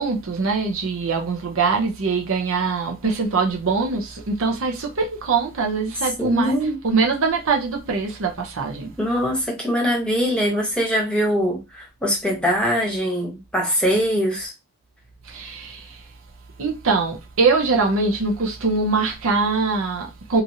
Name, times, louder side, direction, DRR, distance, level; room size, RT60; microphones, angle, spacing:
voice 1, 0.0-6.5 6.8-8.9 15.2-16.0 16.6-20.4, right 4 dB, 70° right, 0.7 m, -23 dB
voice 2, 6.2-6.8 9.0-14.5, equal, 5° left, 1.0 m, -22 dB
2.9 x 2.5 x 2.7 m
head